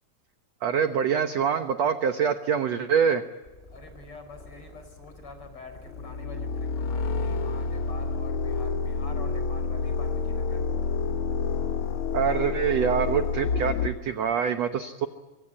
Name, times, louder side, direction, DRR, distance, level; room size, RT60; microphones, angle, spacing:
voice 1, 0.6-3.2 12.1-15.1, right 7 dB, 65° right, 8 dB, 1.8 m, -25 dB
sound 1, 3.4-13.4, left 1 dB, 15° left, 3.0 m, -49 dB
voice 2, 3.7-10.7, left 3 dB, 35° left, 8 dB, 5.5 m, -46 dB
sound 2, 5.9-13.9, left 5 dB, 90° left, 1.1 m, -28 dB
24.5 x 24.5 x 8.7 m, 1.3 s
omnidirectional pair, 4.2 m